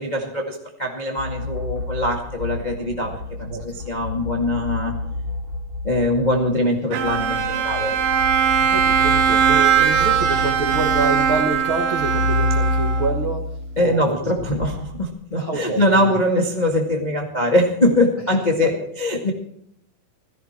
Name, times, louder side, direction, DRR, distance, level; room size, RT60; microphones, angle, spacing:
voice 1, 0.0-4.9 5.8-8.0 13.8-19.3, left 1 dB, 35° left, 1 dB, 0.7 m, -22 dB
sound 1, 1.2-6.6 7.0-15.0, left 2 dB, 20° right, 1.7 m, -29 dB
Bowed string instrument, 6.9-13.3, right 8 dB, 70° right, 2.8 m, -20 dB
voice 2, 8.6-13.5 13.8-14.3 14.6-14.7 15.4-16.1 18.6-18.7, right 3 dB, 55° right, 1 dB, 1.4 m, -27 dB
17.0 x 14.5 x 4.4 m, 0.71 s
omnidirectional pair, 4.5 m